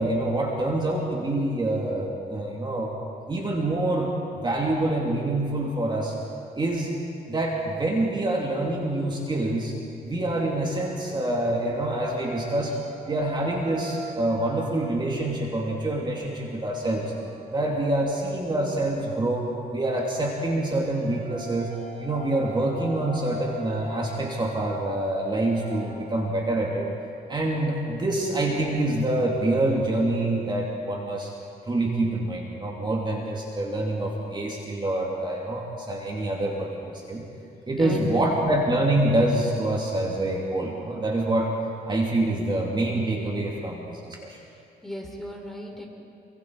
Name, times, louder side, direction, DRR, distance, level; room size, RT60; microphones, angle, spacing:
voice 1, 0.0-2.9 3.3-6.1 6.5-6.9 7.3-9.7 10.0-12.8 13.0-17.1 17.5-19.5 19.7-21.7 22.0-26.9 27.3-31.3 31.7-37.2 37.7-41.5 41.9-44.4, right 1 dB, 25° right, -2 dB, 2.8 m, -26 dB
sound 1, 10.2-18.4 19.6-26.4, right 2 dB, 90° right, 3.8 m, -42 dB
voice 2, 37.8-38.4 44.8-45.9, left 1 dB, ahead, 0 dB, 3.8 m, -35 dB
28.5 x 23.5 x 4.8 m, 2.6 s
cardioid pair, 115°, 18 cm